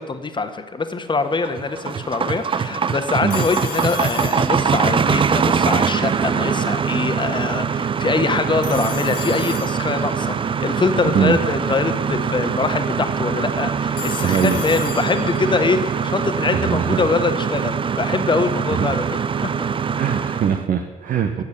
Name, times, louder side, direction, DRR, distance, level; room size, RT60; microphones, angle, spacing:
voice 1, 0.0-19.5, left 4 dB, 25° left, 8 dB, 1.5 m, -23 dB
sound 1, 1.2-20.6, right 6 dB, 30° right, 0.6 m, -23 dB
Telephone, 3.3-5.1 8.6-10.3 13.9-15.6, left 10 dB, 55° left, 1.0 m, -34 dB
voice 2, 11.0-11.4 14.2-14.6 16.5-17.0 18.8-19.0 19.9-21.4, right 8 dB, 50° right, 6 dB, 1.0 m, -22 dB
13.0 x 8.3 x 8.2 m, 1.3 s
figure-of-eight pair, 50°, 19 cm